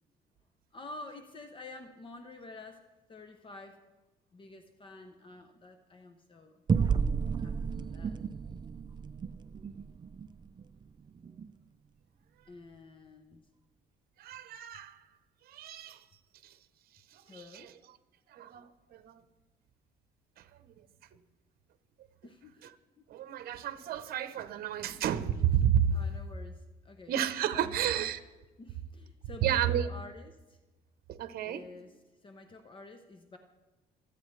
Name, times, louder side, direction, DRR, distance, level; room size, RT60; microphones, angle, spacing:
voice 1, 0.7-3.8 4.3-6.6 7.4-8.2 12.5-13.4 17.3-17.8 22.2-22.6 23.0-23.1 25.9-27.1 27.5-28.1 28.6-30.6 31.4-31.9 32.2-33.4, left 2 dB, 30° left, 7 dB, 0.8 m, -49 dB
sound 1, 6.7-11.5, right 6 dB, 25° right, 0.5 m, -33 dB
voice 2, 14.2-15.0 15.5-16.0 16.4-16.6 17.1-17.7 18.3-19.2 20.4-20.7 23.1-26.0 27.1-28.2 29.4-29.9 31.1-31.6, right 9 dB, 65° right, 11 dB, 0.9 m, -31 dB
24.5 x 8.3 x 3.3 m, 1.1 s
cardioid pair, 110°, 17 cm